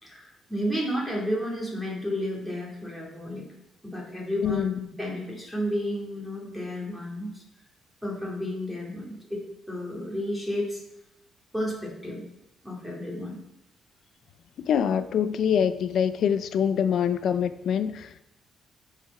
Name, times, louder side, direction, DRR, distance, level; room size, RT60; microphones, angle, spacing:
voice 1, 0.0-3.4 3.8-7.4 8.0-9.4 9.7-10.8 11.5-12.2 12.6-13.4, equal, ahead, 2.8 m, -32 dB
voice 2, 4.4-4.8 14.6-18.2, left 8 dB, 60° left, 0.5 m, -25 dB
10.5 x 5.0 x 5.5 m
cardioid pair, 140°, 0 cm